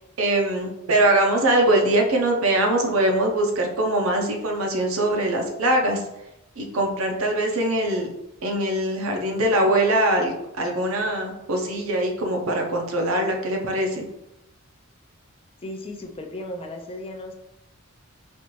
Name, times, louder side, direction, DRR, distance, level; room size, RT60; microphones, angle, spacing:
voice 1, 0.2-6.0 6.6-8.1 8.4-14.1, right 1 dB, 70° right, 2 dB, 0.7 m, -22 dB
voice 2, 15.6-17.3, left 1 dB, 25° left, 4 dB, 0.4 m, -35 dB
4.2 x 2.5 x 3.1 m, 0.88 s
head